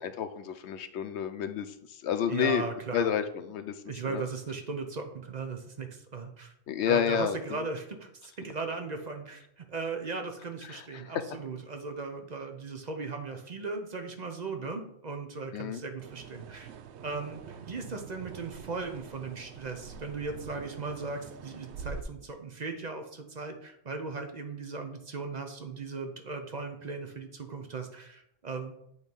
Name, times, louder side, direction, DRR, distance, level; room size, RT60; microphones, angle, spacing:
voice 1, 0.2-1.7 2.0-2.6 2.9-3.7 4.1-4.2 6.7-7.4 10.7-10.8 15.5-15.8, left 8 dB, 80° left, 10 dB, 0.9 m, -29 dB
voice 2, 2.3-3.1 3.9-6.5 6.9-16.7 17.0-28.8, right 4 dB, 45° right, 5 dB, 0.8 m, -37 dB
sound 1, 16.0-22.0, right 6 dB, 80° right, 0.8 m, -45 dB
8.1 x 3.2 x 5.3 m, 0.76 s
omnidirectional pair, 1.1 m